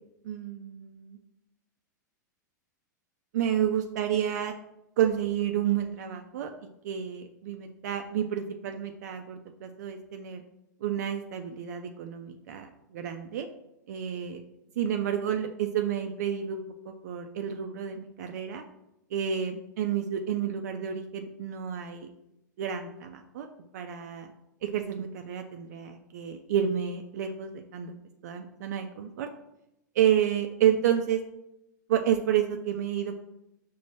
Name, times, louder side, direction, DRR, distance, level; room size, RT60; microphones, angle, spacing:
voice 1, 0.2-1.2 3.3-4.5 5.0-6.5 6.8-10.4 10.8-13.5 13.9-14.4 14.8-16.6 17.0-18.6 19.1-22.1 22.6-23.5 23.7-24.3 24.6-27.9 28.2-29.3 30.0-31.2 31.9-33.2, right 9 dB, 60° right, 5 dB, 0.4 m, -30 dB
6.0 x 2.0 x 3.1 m, 0.86 s
figure-of-eight pair, 100°, 10 cm